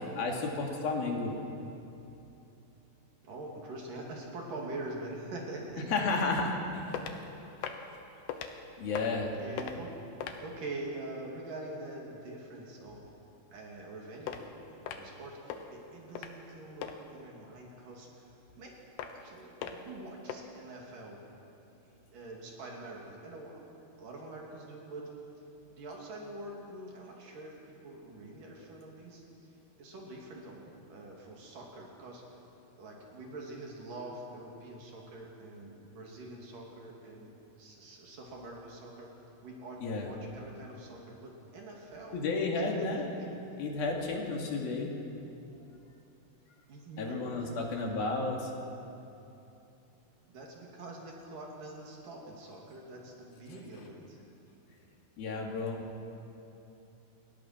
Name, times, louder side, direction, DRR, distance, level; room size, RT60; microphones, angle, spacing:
voice 1, 0.2-1.3 5.9-7.0 7.9-8.0 8.8-9.4 39.8-40.1 42.1-43.1 43.6-44.9 47.0-48.5 55.2-55.8, left 3 dB, 65° left, 0 dB, 4.0 m, -32 dB
voice 2, 3.2-5.9 9.3-9.9 10.4-13.0 13.5-14.4 14.7-18.3 18.6-18.7 19.1-21.2 21.8-23.6 24.0-25.1 25.7-29.2 29.8-30.6 30.9-32.2 32.8-39.1 39.4-42.9 43.2-43.3 46.7-47.5 50.2-54.2, right 2 dB, 55° right, -1 dB, 4.3 m, -45 dB
sound 1, 6.9-7.2 7.6-7.9 8.3-8.5 8.9-9.3 9.6-9.8 10.2-10.5 14.3-14.4 14.9-15.2 15.5-15.6 16.2-16.4 16.8-16.9 19.0-19.3 19.6-19.9 20.3-20.4, left 8 dB, 85° left, 3.3 m, -39 dB
29.0 x 20.5 x 6.1 m, 2.8 s
omnidirectional pair, 4.7 m